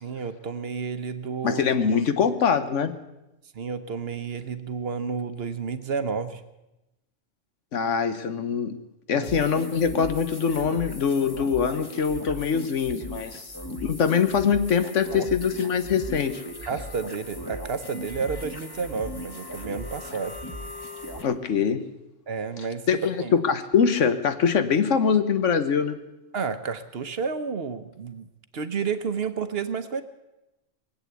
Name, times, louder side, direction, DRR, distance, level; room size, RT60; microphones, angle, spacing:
voice 1, 0.0-1.9 3.5-6.4 9.1-9.3 15.1-15.3 16.6-20.4 22.3-23.3 26.3-28.2 28.5-30.0, right 5 dB, 55° right, 10 dB, 1.1 m, -31 dB
voice 2, 1.4-2.9 7.7-8.8 9.1-13.4 13.8-16.4 21.2-21.8 22.9-26.0, left 6 dB, 80° left, 10 dB, 1.4 m, -23 dB
sound 1, 9.2-21.2, equal, 20° left, 1.3 m, -38 dB
20.5 x 8.3 x 8.2 m, 0.95 s
omnidirectional pair, 1.3 m